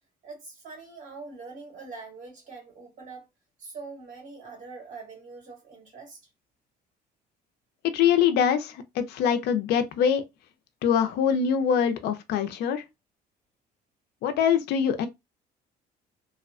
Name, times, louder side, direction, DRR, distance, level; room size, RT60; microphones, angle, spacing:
voice 1, 0.2-3.3 3.6-6.2, right 4 dB, 50° right, 1.6 m, -43 dB
voice 2, 7.8-10.2 10.8-12.8 14.2-15.1, left 8 dB, 75° left, 0.4 m, -24 dB
2.6 x 2.1 x 2.4 m
cardioid pair, 110°, 17 cm